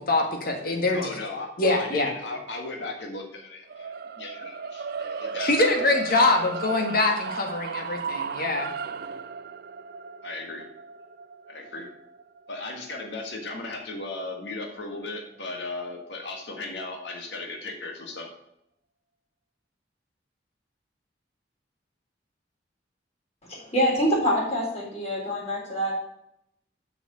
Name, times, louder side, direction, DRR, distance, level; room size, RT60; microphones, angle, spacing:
voice 1, 0.0-1.1 1.6-2.1 5.4-8.7, left 2 dB, 55° left, 3 dB, 1.7 m, -24 dB
voice 2, 0.9-5.9 6.3-7.0 10.2-10.7 11.5-11.9 12.5-18.3, left 2 dB, 70° left, 2 dB, 1.6 m, -37 dB
sound 1, 3.7-13.9, right 5 dB, 55° right, 0.4 m, -36 dB
voice 3, 23.4-25.9, equal, 35° left, -4 dB, 3.9 m, -25 dB
6.7 x 6.2 x 6.8 m, 0.78 s
head